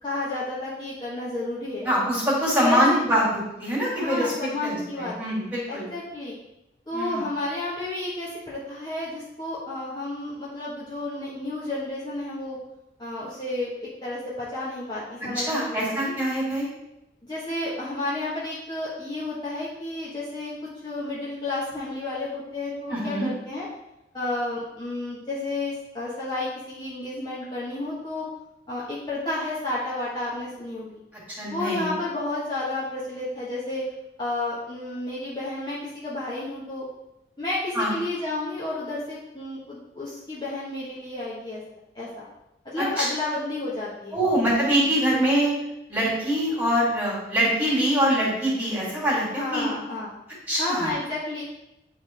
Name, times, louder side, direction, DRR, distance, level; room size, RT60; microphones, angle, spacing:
voice 1, 0.0-1.9 2.5-3.0 3.9-5.1 5.7-6.3 6.9-12.6 13.0-16.1 17.2-20.5 20.8-23.7 24.1-28.2 28.7-31.0 31.5-33.8 34.2-36.9 37.4-41.6 41.9-42.3 42.6-44.2 49.3-50.2 50.6-51.4, left 2 dB, 25° left, -8 dB, 1.3 m, -31 dB
voice 2, 1.8-5.9 6.9-7.2 15.3-16.7 22.9-23.3 31.4-31.9 37.7-37.9 42.8-43.0 44.1-45.5 45.9-49.7 50.5-50.9, equal, 10° right, -6 dB, 2.6 m, -24 dB
10.0 x 3.4 x 4.5 m, 0.90 s
head